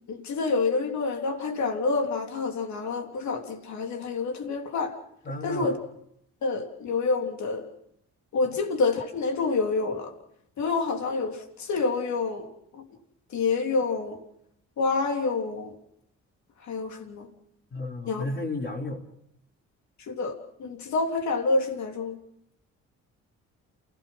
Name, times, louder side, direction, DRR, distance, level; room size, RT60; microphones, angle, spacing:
voice 1, 0.1-5.0 5.4-5.8 6.4-7.7 8.3-10.1 10.6-12.5 12.7-12.8 13.3-14.2 14.8-15.7 16.7-17.3 18.1-18.2 20.1-20.3 20.6-22.2, left 4 dB, 70° left, 3.4 m, -27 dB
voice 2, 5.2-5.8 8.4-8.5 17.7-19.0, left 2 dB, 40° left, 4.4 m, -33 dB
28.5 x 17.0 x 5.9 m
cardioid pair, 90°, 30 cm